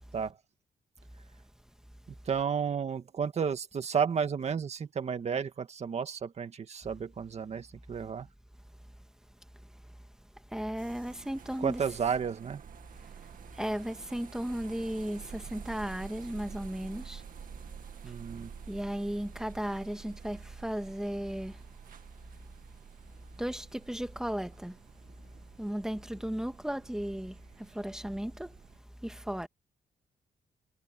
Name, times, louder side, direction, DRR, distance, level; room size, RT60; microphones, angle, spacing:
voice 1, 2.3-8.3 11.6-12.6 18.0-18.5, right 7 dB, 45° right, 1.9 m, -32 dB
voice 2, 9.6-10.0 10.4-11.8 13.0-17.2 17.5-17.6 18.0-21.9 22.3-22.5 23.1-24.8 25.3-29.5, equal, 5° right, 1.7 m, -36 dB
sound 1, 10.8-28.8, right 8 dB, 60° right, 2.0 m, -50 dB
wide cardioid pair, 145°, 16 cm